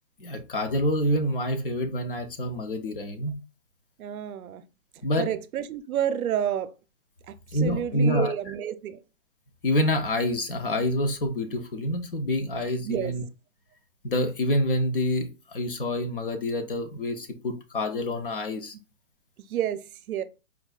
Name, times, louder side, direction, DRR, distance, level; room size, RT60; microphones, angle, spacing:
voice 1, 0.2-3.3 5.0-5.3 7.5-8.3 9.6-13.2 14.0-18.7, left 1 dB, 40° left, 0.5 m, -27 dB
voice 2, 4.0-4.6 5.2-6.7 7.3-7.4 7.6-9.0 12.8-13.1 19.5-20.2, right 10 dB, 80° right, 0.6 m, -29 dB
4.5 x 2.2 x 2.3 m
hypercardioid pair, 170°, 42 cm